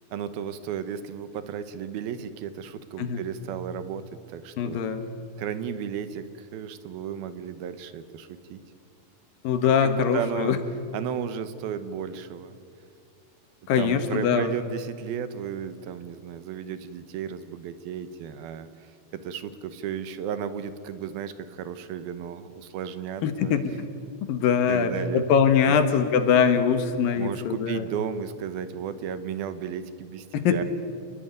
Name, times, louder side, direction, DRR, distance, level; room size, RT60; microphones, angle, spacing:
voice 1, 0.1-4.8 5.4-8.6 9.6-10.6 10.9-12.5 13.8-23.5 24.7-25.2 25.6-25.8 27.1-30.6, right 8 dB, 75° right, 12 dB, 2.8 m, -34 dB
voice 2, 4.6-5.0 9.4-10.6 13.7-14.5 23.2-23.7 24.3-27.9 30.3-30.6, left 7 dB, 70° left, 9 dB, 2.9 m, -22 dB
29.0 x 20.5 x 9.4 m, 2.4 s
omnidirectional pair, 4.5 m